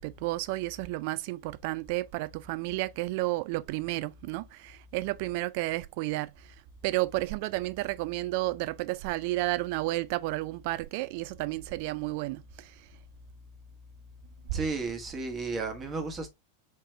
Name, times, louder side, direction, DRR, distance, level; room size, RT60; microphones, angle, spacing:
voice 1, 0.0-6.5 6.8-12.9, right 19 dB, 45° right, 0.4 m, -32 dB
voice 2, 14.5-16.3, right 3 dB, 25° right, 1.3 m, -33 dB
4.4 x 3.1 x 3.2 m
figure-of-eight pair, 90°, 0 cm